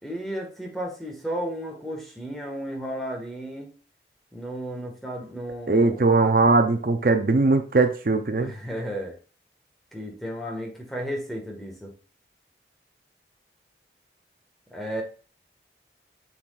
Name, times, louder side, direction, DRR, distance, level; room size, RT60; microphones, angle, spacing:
voice 1, 0.0-3.7 4.3-6.0 8.4-9.2 9.9-11.9 14.7-15.0, equal, ahead, -1 dB, 1.7 m, -33 dB
voice 2, 5.7-8.5, right 3 dB, 50° right, 7 dB, 0.6 m, -20 dB
7.1 x 6.2 x 2.5 m, 0.37 s
head